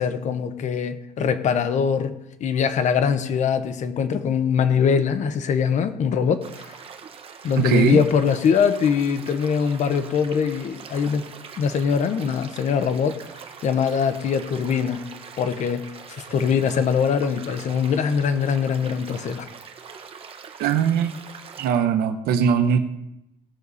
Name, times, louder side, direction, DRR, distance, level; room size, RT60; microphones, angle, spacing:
voice 1, 0.0-2.1 2.4-6.7 7.4-11.3 11.6-13.2 13.6-15.0 15.4-19.5, left 6 dB, 45° left, 10 dB, 1.0 m, -22 dB
sound 1, 6.4-21.7, right 6 dB, 35° right, 1.1 m, -42 dB
voice 2, 7.6-8.0 20.6-21.1 21.6-22.8, right 7 dB, 70° right, 8 dB, 1.1 m, -20 dB
19.0 x 6.6 x 4.2 m, 0.88 s
cardioid pair, 145°, 17 cm